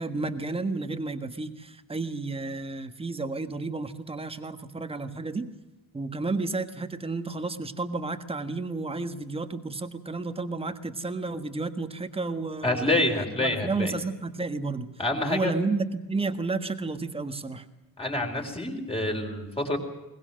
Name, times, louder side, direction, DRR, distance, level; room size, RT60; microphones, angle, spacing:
voice 1, 0.0-5.5 5.9-13.0 13.4-14.9 15.2-17.7, right 3 dB, 15° right, 9 dB, 1.5 m, -31 dB
voice 2, 12.6-13.9 15.0-15.5 18.0-19.8, left 2 dB, 15° left, 2 dB, 4.4 m, -27 dB
22.0 x 20.0 x 7.7 m, 1.0 s
cardioid pair, 155°, 36 cm